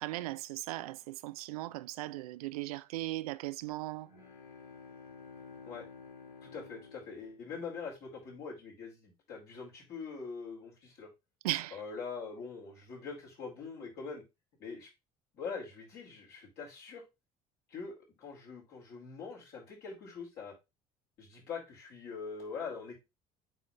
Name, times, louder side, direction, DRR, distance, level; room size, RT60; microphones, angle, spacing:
voice 1, 0.0-4.1 11.4-11.8, right 17 dB, 75° right, 0.5 m, -37 dB
sound 1, 3.9-8.0, left 5 dB, 85° left, 2.1 m, -52 dB
voice 2, 6.4-11.1 11.7-14.2 14.6-14.9 15.3-17.0 17.7-17.9 18.2-20.5 21.2-23.0, left 5 dB, 55° left, 4.6 m, -43 dB
8.9 x 4.4 x 3.4 m
figure-of-eight pair, 55°, 19 cm